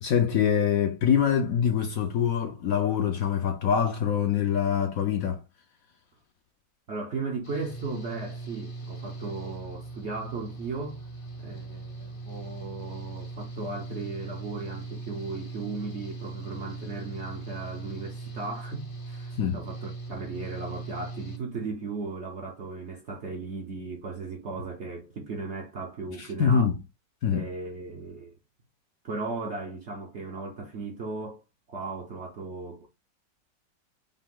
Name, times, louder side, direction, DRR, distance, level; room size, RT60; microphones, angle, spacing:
voice 1, 0.0-5.4 19.4-19.6 26.2-26.7 27.2-27.5, left 8 dB, 70° left, 0.9 m, -24 dB
voice 2, 6.9-11.0 11.4-26.7 27.3-28.4 29.0-31.4 31.7-32.9, right 3 dB, 60° right, 0.7 m, -36 dB
Engine / Mechanical fan, 7.4-21.4, right 3 dB, 40° left, 0.8 m, -39 dB
5.4 x 2.3 x 3.6 m
omnidirectional pair, 1.9 m